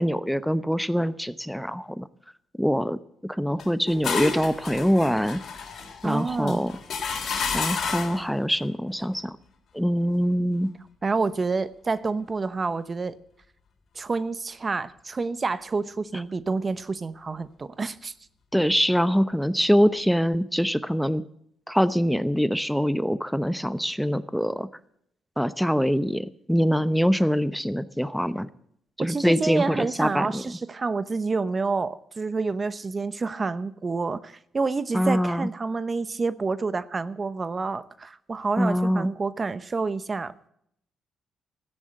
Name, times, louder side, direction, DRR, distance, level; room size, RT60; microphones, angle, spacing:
voice 1, 0.0-2.1 2.6-3.0 3.2-5.4 6.0-6.7 7.5-9.4 9.7-10.7 18.5-21.2 21.7-24.7 25.4-28.5 29.0-30.4 34.9-35.5 38.6-39.1, equal, ahead, 15 dB, 0.9 m, -24 dB
sound 1, 3.6-8.3, left 6 dB, 60° left, 3.4 m, -31 dB
voice 2, 6.0-6.6 11.0-13.2 13.9-18.1 29.0-40.3, right 4 dB, 35° right, 15 dB, 0.9 m, -28 dB
14.0 x 10.0 x 8.8 m, 0.71 s
supercardioid pair, 55°, 0 cm